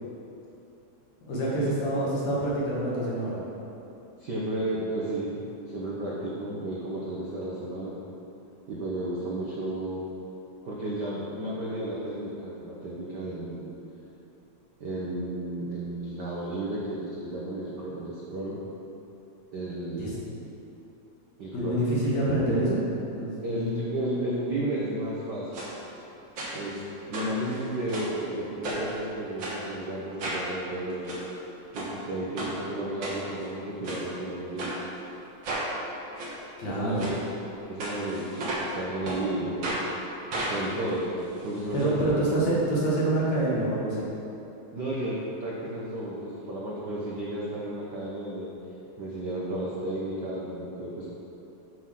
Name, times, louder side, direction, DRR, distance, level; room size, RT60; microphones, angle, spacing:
voice 1, 1.2-3.4 20.0-20.1 21.5-22.8 23.1-23.8 36.6-37.0 41.7-44.1, right 1 dB, 65° left, -6 dB, 3.0 m, -26 dB
voice 2, 4.2-8.0 8.7-10.0 10.6-13.7 14.8-18.6 19.5-20.2 21.4-21.8 23.4-25.6 26.5-31.1 31.7-34.7 36.6-37.2 37.7-39.8 40.5-41.1 41.4-42.4 44.7-48.5 49.0-51.1, right 1 dB, 65° right, -6 dB, 1.0 m, -33 dB
sound 1, 25.5-25.7 26.4-26.8 27.1-28.2 28.6-29.0 29.4-29.6 30.2-30.5 30.9-31.2 31.7-31.9 32.4-32.5 33.0-33.5 33.8-34.0 34.6-34.7 35.4-35.7 36.2-36.3 36.9-37.1 37.8-38.7 39.0-39.2 39.6-39.8 40.3-41.8 42.1-42.2 42.5-42.6, right 1 dB, 50° right, 1.9 m, -33 dB
8.0 x 5.7 x 6.3 m, 2.9 s
omnidirectional pair, 3.3 m